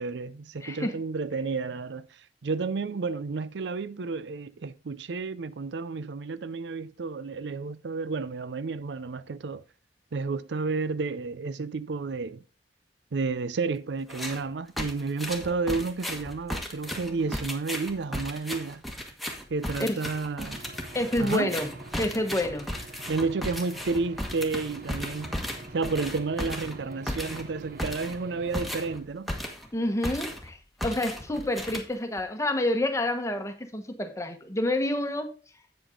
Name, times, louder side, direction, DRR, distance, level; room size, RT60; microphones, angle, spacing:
voice 1, 0.0-2.1 2.4-9.6 10.1-12.4 13.1-18.8 19.5-20.6 21.2-21.5 23.1-25.3 25.7-29.3, right 4 dB, 75° right, 0.5 m, -31 dB
voice 2, 0.6-1.0 19.8-20.0 20.9-21.7 22.0-22.7 29.7-35.3, left 1 dB, 15° left, 1.1 m, -28 dB
sound 1, 14.1-14.4 14.8-29.7 30.0-30.5 30.8-32.2, equal, ahead, 1.4 m, -35 dB
Aircraft / Engine, 20.5-29.0, right 2 dB, 50° right, 0.8 m, -45 dB
8.2 x 7.9 x 3.8 m
head